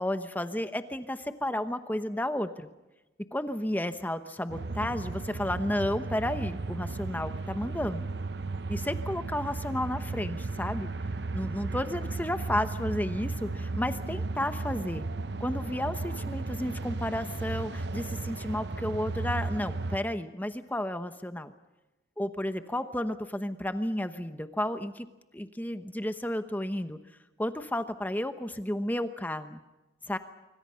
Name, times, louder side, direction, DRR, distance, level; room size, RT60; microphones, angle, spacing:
voice 1, 0.0-2.7 3.3-8.1 8.7-10.9 11.3-15.0 15.4-21.5 22.2-25.1 25.3-27.0 27.4-29.6 30.1-30.2, left 1 dB, 10° left, 9 dB, 1.0 m, -32 dB
sound 1, 4.5-20.0, right 3 dB, 60° right, 0.8 m, -35 dB
25.5 x 25.0 x 5.7 m, 1.0 s
head